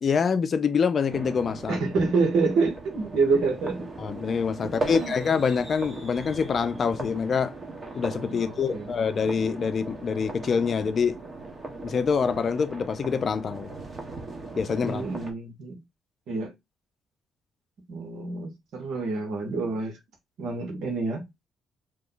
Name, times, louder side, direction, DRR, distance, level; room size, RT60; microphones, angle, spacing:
voice 1, 0.0-1.8 4.0-7.5 7.9-11.2 11.8-13.7 14.6-15.0, left 6 dB, 50° left, 0.5 m, -25 dB
sound 1, 1.1-15.3, right 2 dB, 35° right, 1.1 m, -39 dB
voice 2, 1.7-3.9 4.6-5.1 8.3-8.9 14.8-15.8 16.3-16.5 17.9-20.0 20.4-21.3, right 4 dB, 80° right, 1.2 m, -27 dB
2.9 x 2.2 x 3.8 m
cardioid pair, 90°, 0 cm